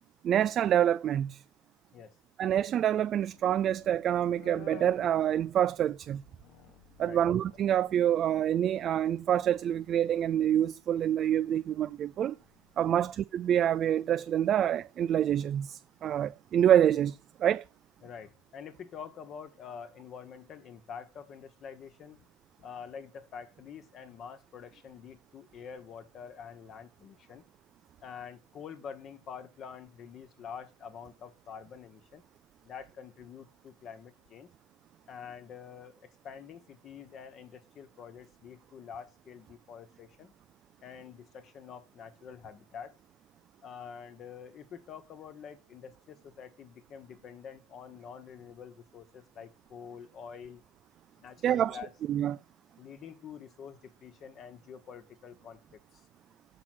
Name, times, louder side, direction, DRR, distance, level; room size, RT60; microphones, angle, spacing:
voice 1, 0.2-1.4 2.4-6.2 7.0-12.4 12.8-17.6 51.4-51.8 52.1-52.4, right 10 dB, 35° right, 0.3 m, -27 dB
sound 1, 2.8-13.0, left 10 dB, 60° left, 1.2 m, -56 dB
voice 2, 18.0-22.3 22.6-27.4 28.0-32.2 32.6-34.5 35.1-40.3 40.8-42.9 43.6-50.6 51.2-51.9 52.8-56.0, left 7 dB, 40° left, 1.2 m, -47 dB
6.1 x 5.8 x 6.1 m
hypercardioid pair, 105°, 0 cm